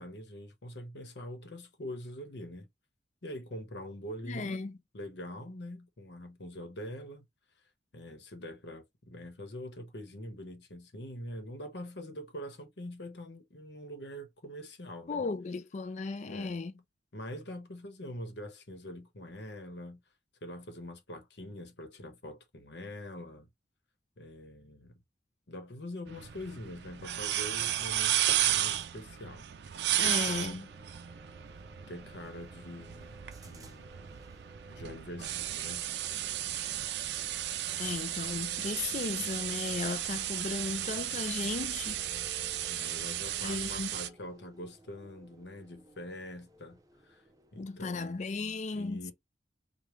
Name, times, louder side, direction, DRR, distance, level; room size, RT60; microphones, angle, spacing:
voice 1, 0.0-2.7 3.2-4.6 4.9-7.2 7.9-15.2 16.3-16.6 17.1-20.0 20.4-23.5 24.2-24.9 25.5-29.5 30.0-30.6 31.9-34.1 34.7-35.8 42.7-47.2 47.5-48.3 48.7-49.1, left 1 dB, 75° left, 1.0 m, -44 dB
voice 2, 4.2-4.8 15.1-16.7 30.0-30.7 37.8-42.0 43.4-43.9 47.6-49.1, left 4 dB, 40° left, 0.4 m, -35 dB
sound 1, 26.1-44.1, right 12 dB, 70° right, 0.4 m, -34 dB
sound 2, 30.0-47.8, right 1 dB, 20° right, 0.5 m, -57 dB
4.9 x 2.3 x 3.1 m
head